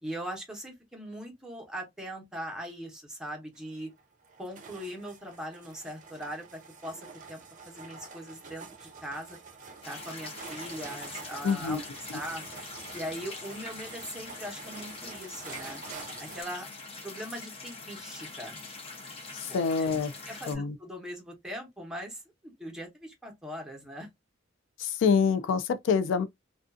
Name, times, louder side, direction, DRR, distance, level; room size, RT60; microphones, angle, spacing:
voice 1, 0.0-3.9 4.4-9.4 9.9-11.8 12.1-12.4 12.9-15.8 16.2-16.7 17.0-18.6 19.5-19.6 20.3-24.1, equal, 5° right, 0.9 m, -40 dB
sound 1, 3.5-16.4, right 4 dB, 40° right, 0.6 m, -47 dB
sound 2, 9.8-20.6, left 3 dB, 30° left, 0.6 m, -44 dB
voice 2, 11.4-11.8 19.3-20.1 20.5-20.8 24.8-26.3, left 6 dB, 65° left, 0.3 m, -26 dB
2.5 x 2.3 x 2.4 m
head